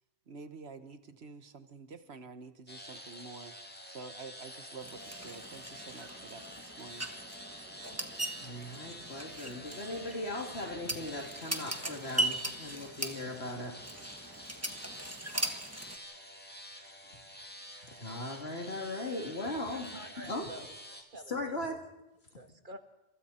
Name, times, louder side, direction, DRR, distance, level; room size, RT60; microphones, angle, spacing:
voice 1, 0.3-3.5 3.9-7.1, right 4 dB, 65° right, 10 dB, 1.4 m, -48 dB
sound 1, 2.7-21.0, equal, 10° left, 1.9 m, -48 dB
sound 2, 4.8-16.0, right 1 dB, 15° right, 1.5 m, -39 dB
voice 2, 8.4-13.8 17.8-19.9 20.3-20.5 21.3-21.8, left 1 dB, 65° left, 2 dB, 3.2 m, -38 dB
voice 3, 19.7-20.7 21.1-21.8 22.3-22.8, right 1 dB, 45° right, 7 dB, 1.6 m, -49 dB
28.0 x 27.0 x 4.4 m, 0.95 s
omnidirectional pair, 1.1 m